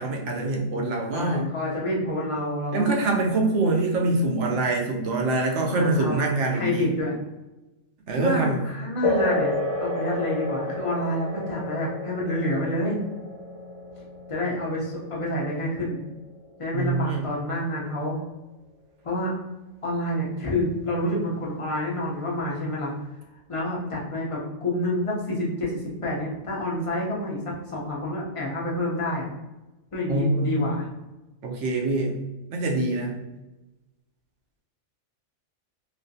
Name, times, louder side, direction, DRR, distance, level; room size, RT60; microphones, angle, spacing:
voice 1, 0.0-1.5 2.7-6.9 8.1-8.7 16.7-17.3 30.1-30.7 31.4-32.2 32.5-33.2, right 2 dB, 75° right, 1 dB, 1.0 m, -24 dB
voice 2, 1.1-2.9 5.7-7.2 8.2-9.5 9.8-13.0 14.3-16.0 16.6-18.2 19.0-19.3 19.8-22.9 23.5-29.3 29.9-30.9, left 1 dB, 30° left, -4 dB, 0.7 m, -28 dB
sound 1, 9.0-17.0, left 1 dB, 75° left, 1.0 m, -31 dB
3.2 x 2.9 x 2.6 m, 1.0 s
omnidirectional pair, 1.2 m